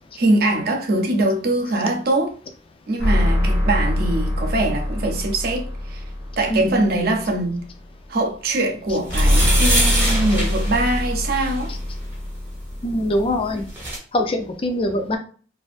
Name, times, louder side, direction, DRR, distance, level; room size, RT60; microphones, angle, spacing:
voice 1, 0.2-2.4 2.9-6.0 6.4-7.6 8.1-11.7, right 2 dB, 55° right, 0.5 m, -22 dB
sound 1, 3.0-7.5 9.1-13.9, left 1 dB, 70° left, 0.7 m, -23 dB
sound 2, 9.0-11.6 13.3-13.4 13.6-14.0, right 1 dB, 10° right, 0.7 m, -24 dB
voice 2, 12.8-13.7 14.1-15.2, left 1 dB, 30° left, 0.3 m, -23 dB
2.5 x 2.3 x 2.4 m
head